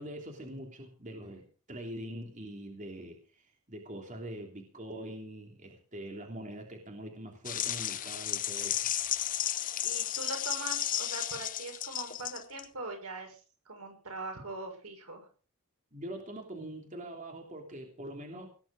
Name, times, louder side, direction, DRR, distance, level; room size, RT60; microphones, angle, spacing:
voice 1, 0.0-1.4 1.7-8.9 15.9-18.5, right 1 dB, 35° right, 2 dB, 3.1 m, -43 dB
sound 1, 7.4-12.6, left 11 dB, 35° left, 0.7 m, -33 dB
voice 2, 9.8-13.4 13.7-15.3, right 2 dB, 85° right, 5 dB, 6.0 m, -41 dB
18.5 x 10.5 x 5.2 m, 0.39 s
head